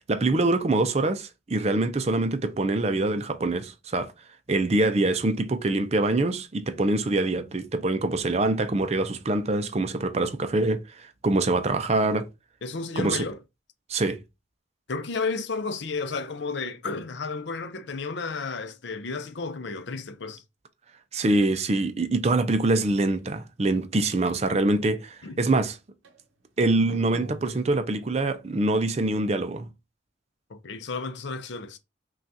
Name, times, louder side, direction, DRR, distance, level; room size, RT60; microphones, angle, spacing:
voice 1, 0.1-4.1 4.5-12.3 13.0-13.2 13.9-14.2 21.1-25.8 26.6-29.7, right 2 dB, 35° right, 0.4 m, -24 dB
voice 2, 12.6-13.4 14.9-20.4 25.2-25.4 30.5-31.8, left 4 dB, 65° left, 0.6 m, -32 dB
sound 1, 26.0-26.2 26.6-28.2, equal, 80° right, 0.7 m, -43 dB
5.6 x 2.4 x 2.7 m
head